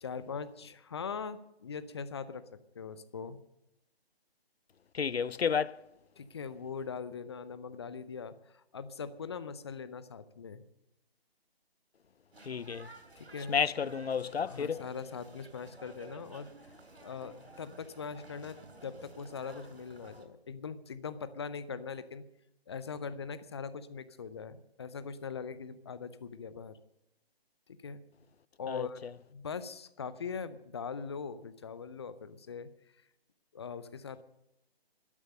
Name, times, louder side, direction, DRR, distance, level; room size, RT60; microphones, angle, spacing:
voice 1, 0.0-2.5 2.7-3.4 6.2-10.6 13.2-13.6 14.4-16.5 17.0-22.3 22.7-26.8 27.7-28.0 28.6-29.0 29.3-32.7 33.5-34.2, left 6 dB, 25° left, 0.6 m, -41 dB
voice 2, 4.9-5.8 12.5-12.9 13.5-14.8 28.7-29.1, left 6 dB, 75° left, 0.7 m, -31 dB
sound 1, 12.3-20.2, right 2 dB, 80° right, 3.2 m, -53 dB
13.5 x 12.0 x 6.7 m
figure-of-eight pair, 150°, 31 cm